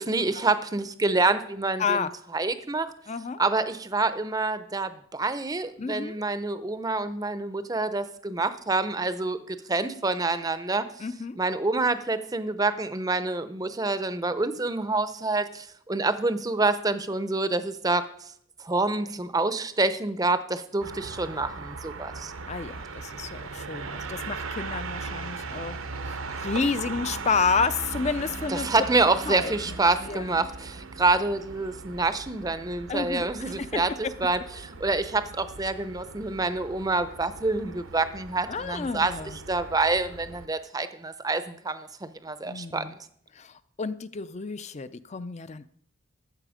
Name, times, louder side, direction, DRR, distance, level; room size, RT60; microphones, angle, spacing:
voice 1, 0.0-2.0 2.3-2.9 3.4-10.9 11.4-18.0 18.6-22.3 28.5-33.9 34.2-39.1 39.5-42.9, right 3 dB, 15° right, 12 dB, 0.6 m, -27 dB
voice 2, 1.8-2.1 3.1-3.4 5.8-6.2 11.0-11.4 22.5-25.7 26.0-28.7 29.3-30.5 32.9-33.8 38.5-39.4 42.5-43.0 43.3-45.6, left 5 dB, 30° left, 14 dB, 0.4 m, -30 dB
sound 1, 20.8-40.5, right 4 dB, 70° right, 0.9 m, -39 dB
14.0 x 7.5 x 5.0 m, 0.66 s
head